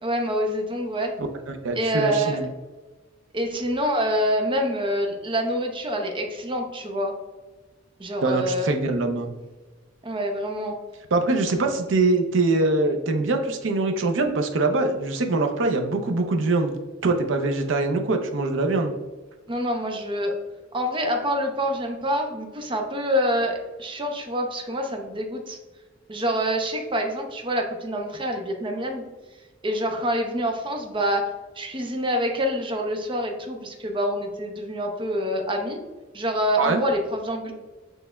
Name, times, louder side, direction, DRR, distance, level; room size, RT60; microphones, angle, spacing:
voice 1, 0.0-1.2 1.7-2.5 3.3-7.1 8.0-8.7 10.0-10.8 19.5-20.3 20.7-25.6 26.1-29.0 29.6-31.3 31.6-35.8 36.1-37.5, equal, 25° right, 3 dB, 0.6 m, -26 dB
voice 2, 1.5-2.5 8.2-9.3 11.1-16.7 17.0-18.9 36.6-36.8, right 2 dB, 80° right, 4 dB, 0.5 m, -23 dB
6.3 x 3.3 x 2.2 m, 1.2 s
head